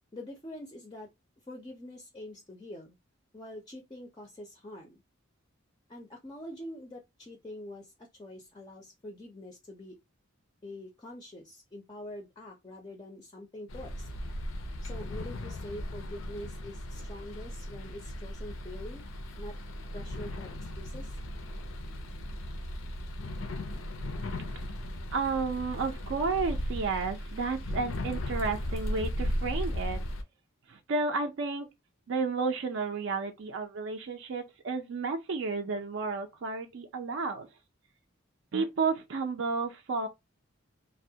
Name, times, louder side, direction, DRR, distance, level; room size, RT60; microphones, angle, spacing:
voice 1, 0.1-1.1 1.5-3.0 3.3-5.0 5.9-7.9 8.2-10.0 10.6-14.1 14.8-19.0 19.4-19.6 19.9-21.2, left 1 dB, 20° left, 0.4 m, -45 dB
sound 1, 13.7-30.2, left 1 dB, 80° left, 0.4 m, -36 dB
voice 2, 25.1-30.0 30.7-31.7 32.1-37.5 38.5-40.1, right 4 dB, 65° right, 0.4 m, -32 dB
2.2 x 2.1 x 2.7 m
head